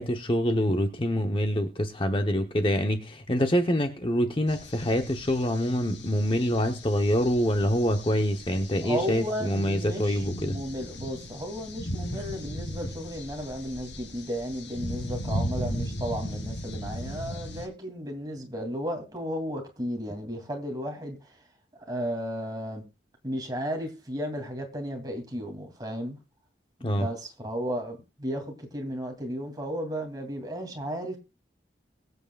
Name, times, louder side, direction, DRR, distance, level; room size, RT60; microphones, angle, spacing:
voice 1, 0.0-10.6 26.8-27.1, equal, 30° left, 0.9 m, -26 dB
sound 1, 4.5-17.7, equal, 90° left, 2.8 m, -37 dB
voice 2, 8.8-21.2 21.9-22.8 23.2-26.2 26.8-31.2, equal, 20° right, 2.7 m, -34 dB
22.5 x 8.1 x 2.4 m
head